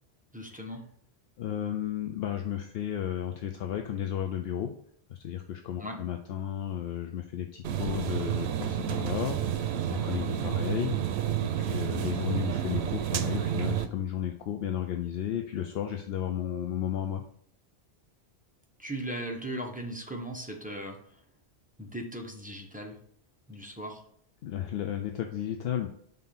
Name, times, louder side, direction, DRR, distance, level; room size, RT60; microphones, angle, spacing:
voice 1, 0.3-0.8 5.8-6.0 18.8-21.2 21.8-23.0 23.5-24.0, right 1 dB, 10° right, 0 dB, 0.9 m, -38 dB
voice 2, 1.4-4.7 5.1-9.4 9.9-11.0 11.4-17.2 24.4-25.9, left 10 dB, 70° left, 6 dB, 0.8 m, -33 dB
sound 1, 7.6-13.9, right 10 dB, 80° right, 0.8 m, -30 dB
5.5 x 3.7 x 5.6 m, 0.63 s
omnidirectional pair, 1.1 m